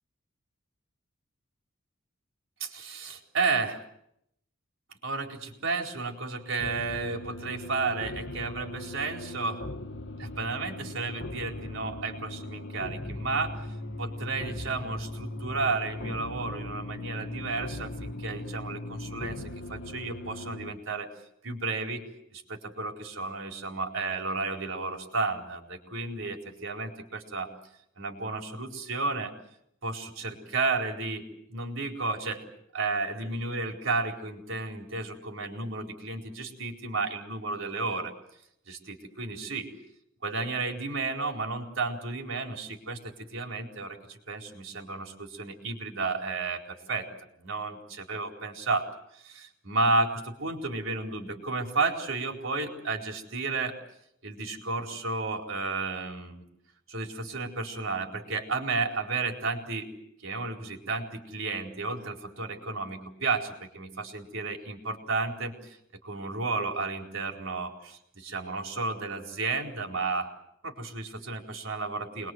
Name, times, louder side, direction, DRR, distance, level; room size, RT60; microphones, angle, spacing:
voice 1, 2.6-3.8 5.0-9.6 10.2-13.5 14.0-19.4 19.7-21.1 21.4-22.0 22.3-27.5 28.0-29.3 29.8-31.3 31.5-32.5 32.7-38.1 38.7-39.7 40.2-47.1 47.4-48.9 49.1-53.8 54.2-56.4 56.9-59.9 60.2-65.8 66.0-70.3 70.6-72.3, right 3 dB, 70° right, 3 dB, 4.3 m, -32 dB
sound 1, 6.6-20.7, left 1 dB, 65° left, 1.4 m, -39 dB
27.5 x 21.5 x 7.9 m, 0.77 s
head